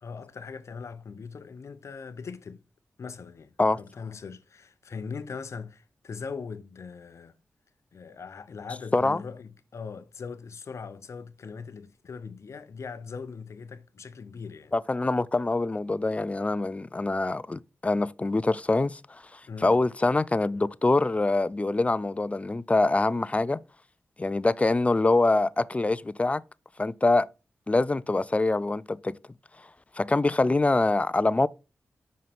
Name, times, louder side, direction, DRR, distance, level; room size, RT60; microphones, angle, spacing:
voice 1, 0.0-2.6 3.0-7.4 7.9-14.7 19.5-19.8, left 5 dB, 65° left, 0.6 m, -40 dB
voice 2, 14.7-23.6 24.2-26.4 26.8-27.3 27.7-29.1 30.0-31.5, left 2 dB, 25° left, 0.4 m, -24 dB
5.4 x 5.3 x 3.5 m
cardioid pair, 45°, 5 cm